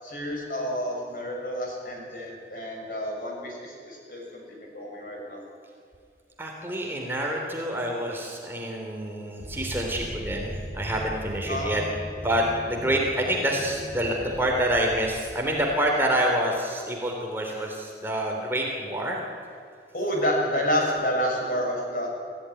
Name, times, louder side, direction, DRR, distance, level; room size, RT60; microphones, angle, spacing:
voice 1, 0.0-5.4 11.5-11.8 19.9-22.1, equal, 50° left, 0 dB, 6.8 m, -29 dB
voice 2, 6.4-11.8 12.2-19.2, right 1 dB, 15° right, 0 dB, 3.4 m, -27 dB
sound 1, 9.4-16.2, equal, 30° right, 4.3 m, -39 dB
25.5 x 15.5 x 10.0 m, 2.4 s
head